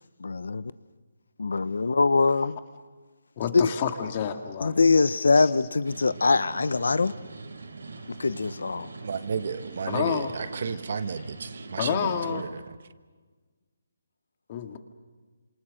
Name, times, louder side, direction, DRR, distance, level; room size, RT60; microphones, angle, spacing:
voice 1, 0.2-0.7 1.4-2.6 3.5-3.7 4.6-7.1 8.2-8.9, left 4 dB, 80° left, 0.9 m, -23 dB
voice 2, 3.4-4.7 5.4-5.5 9.9-10.3 11.8-12.5 14.5-14.8, left 8 dB, 30° left, 2.0 m, -29 dB
sound 1, 5.8-12.4, right 3 dB, 85° right, 4.3 m, -42 dB
voice 3, 9.0-12.8, right 6 dB, 50° right, 1.3 m, -33 dB
28.5 x 27.0 x 6.5 m
hypercardioid pair, 170°, 0 cm